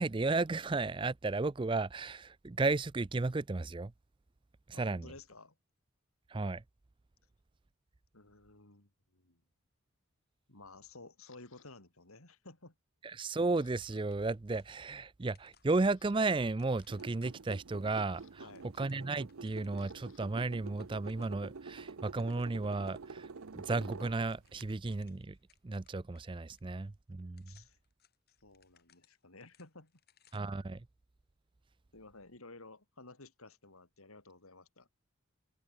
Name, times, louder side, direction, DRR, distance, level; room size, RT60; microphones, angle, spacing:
voice 1, 0.0-3.9 4.8-5.1 6.3-6.6 13.0-18.5 18.8-23.3 23.5-25.4 25.6-27.5 30.3-30.9, right 3 dB, 25° right, 0.4 m, -34 dB
voice 2, 4.7-5.5 8.1-9.4 10.5-12.7 18.4-18.7 27.5-27.8 28.4-29.9 31.9-34.9, left 3 dB, 85° left, 4.1 m, -54 dB
Camera, 11.2-11.7 12.3-12.6 12.9-14.0 14.3-14.5 15.0-15.1 15.5-16.2 17.4-20.2 20.5-23.1, left 10 dB, 70° left, 7.2 m, -69 dB
sound 1, 14.1-15.1 15.3-17.8 18.3-20.1 20.4-20.5 20.7-21.5 21.8-23.0 23.4-23.5 23.8-26.2 26.5-26.6 27.2-30.6, left 9 dB, 45° left, 5.7 m, -70 dB
sound 2, 16.9-24.6, right 4 dB, 80° right, 0.7 m, -48 dB
head